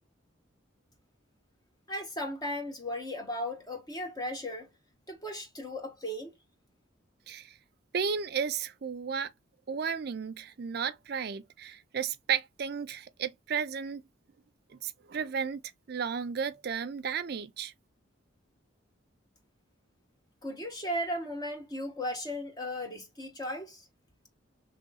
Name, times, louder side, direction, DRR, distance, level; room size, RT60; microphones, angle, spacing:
voice 1, 1.9-4.7 5.1-6.3 20.4-23.8, equal, 20° left, 0.7 m, -36 dB
voice 2, 7.9-9.3 9.7-14.0 14.7-15.6 15.9-17.7, right 6 dB, 50° right, 0.4 m, -33 dB
3.0 x 2.6 x 3.8 m
head